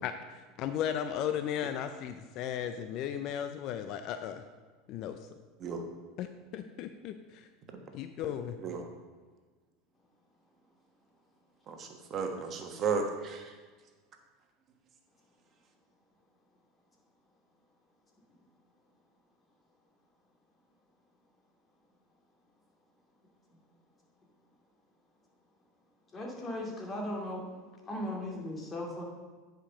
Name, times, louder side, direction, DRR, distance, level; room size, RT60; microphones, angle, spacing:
voice 1, 0.0-4.4 4.9-5.3 6.2-7.5 7.9-8.6, left 9 dB, 55° left, 9 dB, 0.5 m, -36 dB
voice 2, 11.7-13.4, right 5 dB, 40° right, 4 dB, 1.3 m, -34 dB
voice 3, 26.1-27.5 27.9-29.0, left 1 dB, 30° left, -1 dB, 2.5 m, -37 dB
9.8 x 5.2 x 5.1 m, 1.4 s
hypercardioid pair, 85°, 0 cm